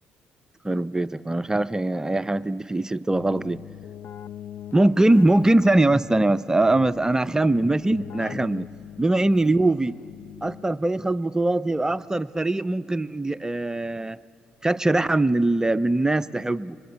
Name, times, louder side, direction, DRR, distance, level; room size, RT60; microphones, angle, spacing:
voice 1, 0.6-3.6 4.7-8.7 9.0-10.0 10.4-14.2 14.6-16.8, right 2 dB, 15° right, 16 dB, 0.5 m, -22 dB
Keyboard (musical), 3.1-11.0, left 11 dB, 65° left, 0.6 m, -42 dB
23.5 x 21.0 x 8.2 m, 2.5 s
hypercardioid pair, 55°, 4 cm